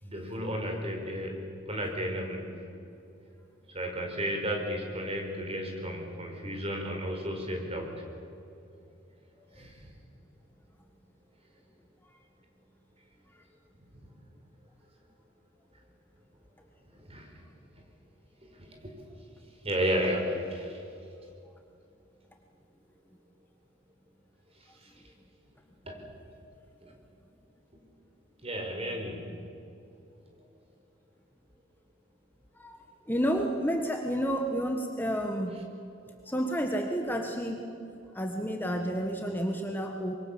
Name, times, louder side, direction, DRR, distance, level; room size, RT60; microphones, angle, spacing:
voice 1, 0.0-1.4 1.7-2.6 3.7-7.9 9.6-9.8 16.9-17.3 18.6-18.9 19.6-20.8 25.8-26.0 26.8-26.9 28.4-29.2, equal, 30° right, 2 dB, 4.8 m, -33 dB
voice 2, 32.6-35.7 36.2-37.6 38.1-40.1, equal, 10° left, 2 dB, 1.4 m, -30 dB
25.5 x 23.5 x 7.4 m, 2.6 s
head